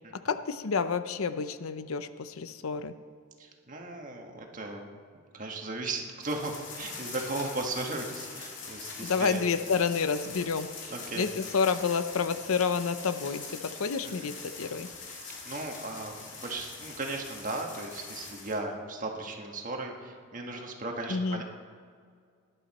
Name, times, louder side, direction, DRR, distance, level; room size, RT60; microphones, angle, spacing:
voice 1, 0.1-2.9 9.0-14.9 21.1-21.4, left 5 dB, 80° left, 12 dB, 0.6 m, -29 dB
voice 2, 3.4-4.9 5.3-9.4 10.9-11.2 14.0-14.3 15.4-21.4, right 2 dB, 40° right, 2 dB, 1.5 m, -36 dB
sound 1, 6.2-18.6, left 4 dB, 55° left, 2.2 m, -43 dB
18.5 x 11.0 x 4.3 m, 2.1 s
head